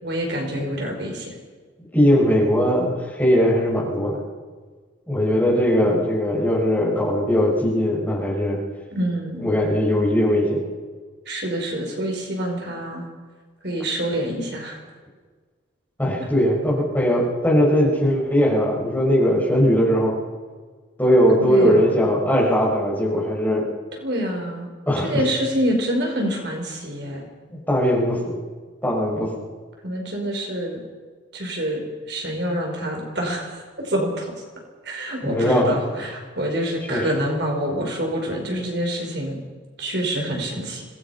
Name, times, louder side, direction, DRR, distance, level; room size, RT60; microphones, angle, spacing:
voice 1, 0.0-1.4 5.8-5.9 8.9-9.5 11.2-13.0 13.6-14.8 21.3-22.1 24.0-24.7 25.0-27.3 29.8-30.8 31.3-34.3 34.8-39.4 39.8-40.8, equal, 60° right, 1 dB, 5.0 m, -26 dB
voice 2, 1.9-4.2 5.1-8.6 9.4-10.6 16.0-20.2 21.0-23.7 24.9-25.2 27.5-28.4 28.8-29.3 35.2-35.8 36.9-37.0, equal, 10° left, -5 dB, 6.3 m, -19 dB
26.0 x 19.0 x 5.8 m, 1.5 s
head